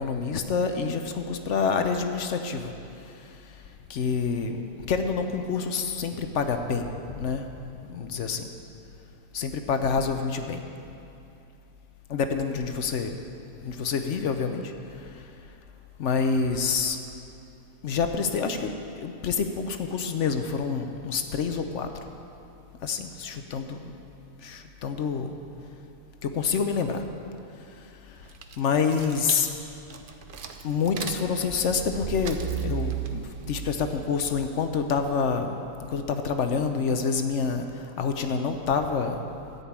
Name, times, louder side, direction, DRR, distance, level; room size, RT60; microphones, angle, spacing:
voice 1, 0.0-3.6 3.9-8.5 9.3-10.6 12.1-13.2 13.6-15.3 16.0-17.0 17.8-21.9 22.8-23.9 24.4-25.3 26.2-27.0 27.7-28.3 28.6-29.5 30.6-35.6 35.9-39.3, left 5 dB, 60° left, 6 dB, 0.8 m, -28 dB
sound 1, 28.2-34.7, right 8 dB, 70° right, 0.5 m, -36 dB
13.5 x 5.4 x 8.7 m, 2.7 s
omnidirectional pair, 1.8 m